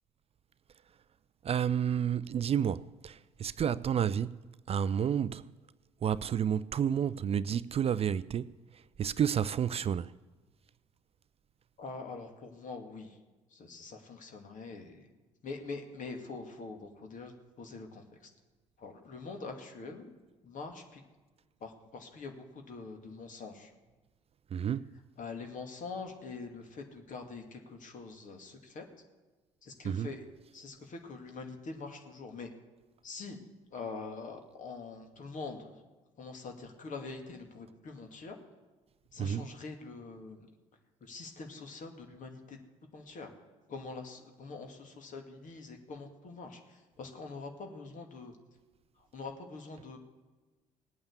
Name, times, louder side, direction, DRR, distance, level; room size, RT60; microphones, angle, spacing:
voice 1, 1.4-4.4 4.7-5.5 6.0-10.1 24.5-24.9 29.8-30.1 39.2-39.5, right 8 dB, 35° right, 0.4 m, -30 dB
voice 2, 11.8-13.2 13.5-15.1 15.4-18.0 18.8-20.2 20.4-21.0 21.6-23.7 25.2-28.9 29.6-30.2 30.5-32.5 33.0-33.4 33.7-35.8 36.2-38.4 39.1-40.5 41.0-42.6 42.9-43.3 43.7-48.3 49.1-50.0, left 4 dB, 50° left, 2.5 m, -44 dB
19.0 x 8.7 x 7.2 m
figure-of-eight pair, 50°, 17 cm